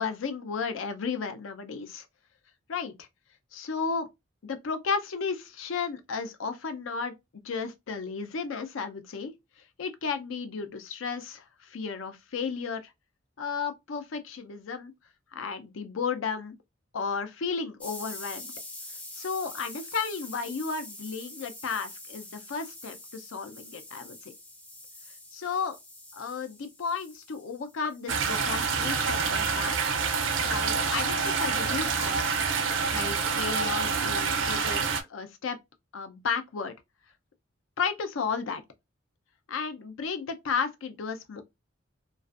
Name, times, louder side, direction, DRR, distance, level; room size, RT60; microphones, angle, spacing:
voice 1, 0.0-2.1 2.7-3.1 3.5-4.1 4.4-7.1 7.4-9.3 9.8-12.9 13.4-14.9 15.3-16.5 16.9-18.5 19.1-24.3 25.3-25.8 26.1-29.8 30.4-32.4 32.7-35.6 35.9-36.7 37.8-38.6 39.5-41.4, left 5 dB, 75° left, 0.5 m, -33 dB
sound 1, 17.8-28.4, left 1 dB, 5° left, 0.3 m, -45 dB
sound 2, 28.1-35.0, right 5 dB, 70° right, 0.4 m, -27 dB
2.4 x 2.3 x 2.3 m
head